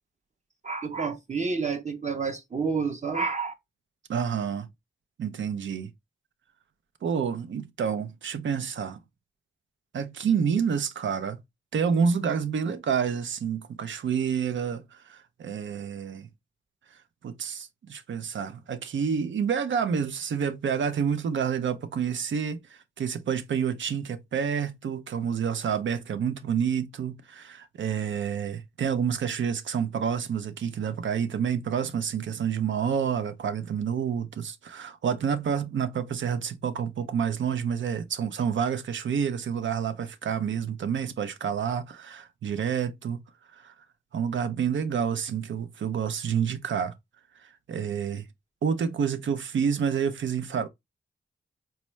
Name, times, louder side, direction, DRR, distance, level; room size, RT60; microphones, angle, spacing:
voice 1, 0.6-3.5, right 5 dB, 40° right, 0.6 m, -29 dB
voice 2, 4.1-4.7 5.2-5.9 7.0-9.0 9.9-11.4 11.7-16.3 17.2-22.6 23.0-43.2 43.5-43.7 44.1-46.9 47.7-48.2 48.6-50.7, right 7 dB, 85° right, 0.5 m, -28 dB
4.3 x 2.2 x 3.0 m
cardioid pair, 50°, 19 cm